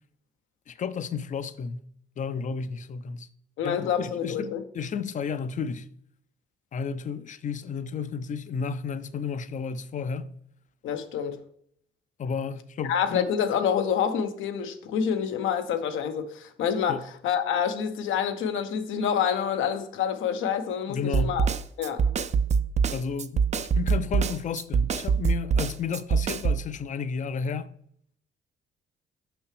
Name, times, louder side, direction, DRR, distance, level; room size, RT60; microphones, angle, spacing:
voice 1, 0.7-1.9 2.2-3.3 3.6-5.9 6.7-10.3 12.2-13.3 16.9-17.0 20.9-21.4 22.9-27.7, left 6 dB, 40° left, 0.5 m, -32 dB
voice 2, 3.6-4.6 10.8-11.4 12.8-21.5 21.8-22.0, left 8 dB, 80° left, 0.8 m, -27 dB
Snare drum, 21.1-26.6, right 6 dB, 35° right, 0.4 m, -24 dB
6.0 x 5.6 x 3.3 m
cardioid pair, 90°, 20 cm